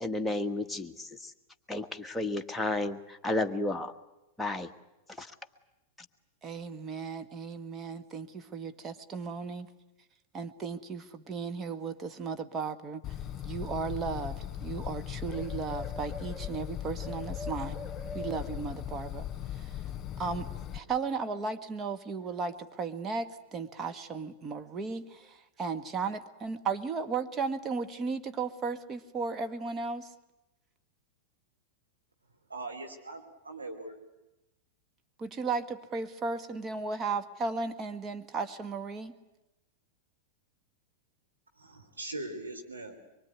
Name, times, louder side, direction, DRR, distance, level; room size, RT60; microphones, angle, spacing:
voice 1, 0.0-1.1 1.7-3.9 4.4-4.7 5.2-5.3, left 2 dB, 5° left, 4 dB, 1.5 m, -32 dB
voice 2, 6.4-9.7 10.3-13.0 13.4-17.8 18.1-19.3 20.2-20.5 20.7-30.1 35.2-39.2, right 4 dB, 25° right, 8 dB, 1.7 m, -35 dB
Bird, 13.0-20.8, left 9 dB, 30° left, 3.0 m, -38 dB
voice 3, 32.5-33.9 41.6-43.0, right 2 dB, 90° right, 2 dB, 3.3 m, -41 dB
23.5 x 23.5 x 9.7 m, 0.96 s
figure-of-eight pair, 95°, 0 cm